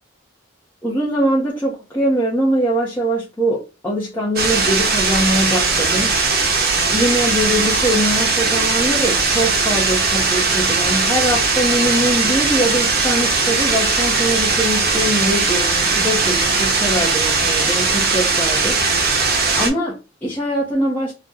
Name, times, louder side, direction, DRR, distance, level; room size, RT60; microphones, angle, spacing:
voice 1, 0.8-6.1 6.9-19.1 19.5-21.1, equal, 10° left, 0.7 m, -22 dB
sound 1, 4.4-19.7, right 4 dB, 55° right, 0.8 m, -18 dB
2.7 x 2.1 x 3.6 m
head